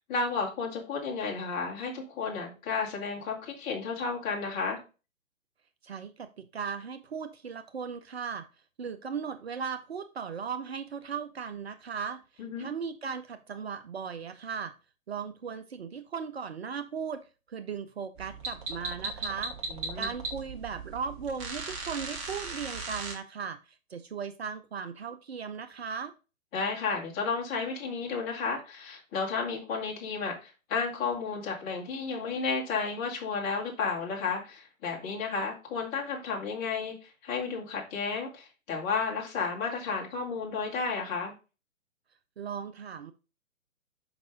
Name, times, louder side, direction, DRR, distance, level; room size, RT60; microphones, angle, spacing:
voice 1, 0.1-4.8 12.4-12.7 19.7-20.1 26.5-41.3, left 4 dB, 20° left, -2 dB, 2.1 m, -32 dB
voice 2, 5.8-8.5 8.8-14.7 15.1-19.5 19.9-26.1 42.4-43.1, right 6 dB, 50° right, 10 dB, 0.7 m, -37 dB
sound 1, 18.2-23.1, right 3 dB, 25° right, 1.3 m, -37 dB
6.0 x 5.4 x 3.7 m, 0.31 s
figure-of-eight pair, 125°, 41 cm